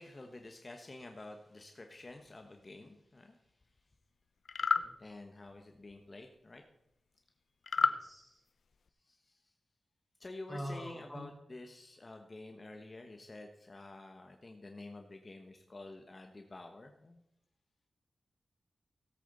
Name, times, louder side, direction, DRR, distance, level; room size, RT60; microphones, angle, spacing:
voice 1, 0.0-3.4 5.0-6.6 9.1-9.5 10.2-17.2, left 2 dB, 30° left, 4 dB, 1.2 m, -50 dB
sound 1, 4.5-4.9 7.7-8.0, left 5 dB, 70° left, 0.6 m, -29 dB
voice 2, 7.8-8.4 10.5-11.3, equal, 10° right, -1 dB, 4.6 m, -44 dB
17.0 x 8.5 x 4.0 m, 0.84 s
wide cardioid pair, 105°, 0 cm